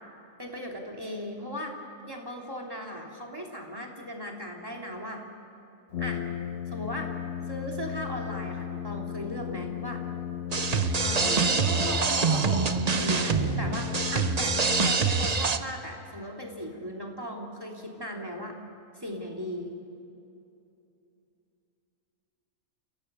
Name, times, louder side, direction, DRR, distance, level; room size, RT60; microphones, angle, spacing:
voice 1, 0.4-1.7 2.1-5.2 6.0-6.2 6.7-7.1 7.5-10.0 11.0-11.5 13.0-18.6 18.9-19.7, equal, 15° right, 0 dB, 3.0 m, -37 dB
Brass instrument, 5.9-15.4, left 10 dB, 60° left, 0.9 m, -35 dB
sound 1, 10.5-15.6, right 5 dB, 35° right, 0.8 m, -25 dB
voice 2, 11.2-12.9, right 1 dB, 75° right, -1 dB, 5.9 m, -35 dB
29.5 x 17.5 x 6.9 m, 2.7 s
omnidirectional pair, 1.5 m